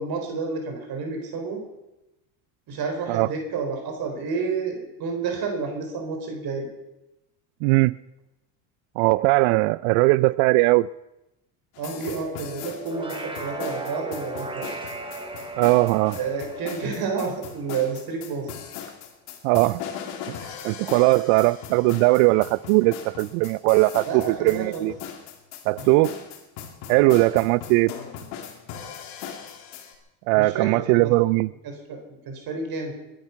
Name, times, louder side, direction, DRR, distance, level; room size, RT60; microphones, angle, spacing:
voice 1, 0.0-1.6 2.7-6.7 11.8-14.8 16.2-18.5 24.1-24.9 25.8-26.1 27.0-27.1 30.3-31.1 31.6-32.9, right 5 dB, 55° right, 3 dB, 4.2 m, -30 dB
voice 2, 7.6-8.0 9.0-10.9 15.6-16.2 19.4-19.8 20.3-20.4 20.6-24.9 25.7-26.1 26.9-27.9 30.3-31.5, right 22 dB, 80° right, 20 dB, 0.5 m, -19 dB
sound 1, 11.7-29.9, left 8 dB, 85° left, 2.7 m, -39 dB
sound 2, 12.0-17.4, left 1 dB, 50° left, 1.9 m, -41 dB
sound 3, 12.7-18.2, right 3 dB, 10° right, 2.2 m, -38 dB
21.0 x 10.5 x 5.8 m, 0.95 s
supercardioid pair, 100°, 44 cm